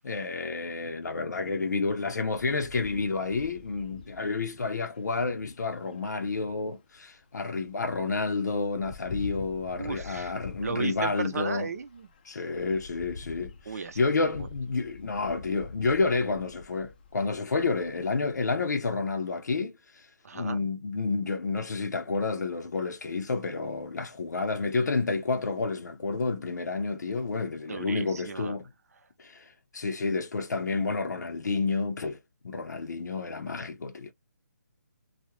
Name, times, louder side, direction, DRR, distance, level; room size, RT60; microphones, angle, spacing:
voice 1, 0.0-11.7 12.2-20.1 20.3-28.7 29.2-32.2 32.4-34.1, left 4 dB, 80° left, 0.6 m, -30 dB
sound 1, 2.3-7.2 7.5-18.6, left 5 dB, 30° left, 0.4 m, -46 dB
voice 2, 9.7-10.3 10.6-12.1 13.7-14.5 20.2-20.7 27.7-28.6, right 5 dB, 60° right, 0.6 m, -35 dB
2.4 x 2.1 x 2.8 m
hypercardioid pair, 160°, 9 cm